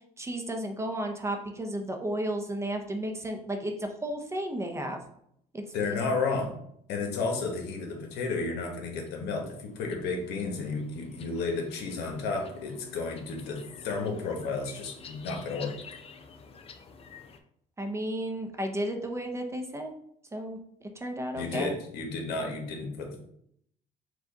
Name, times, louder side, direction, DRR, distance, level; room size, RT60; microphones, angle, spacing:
voice 1, 0.2-5.0 5.5-5.6 17.8-19.9 20.3-21.8, right 1 dB, 15° right, 4 dB, 0.6 m, -33 dB
voice 2, 5.7-6.5 6.9-15.8 21.3-23.2, left 4 dB, 80° left, 2 dB, 1.1 m, -32 dB
sound 1, 8.8-17.4, left 5 dB, 35° left, 0.5 m, -49 dB
4.8 x 2.4 x 3.9 m, 0.69 s
cardioid pair, 110°, 17 cm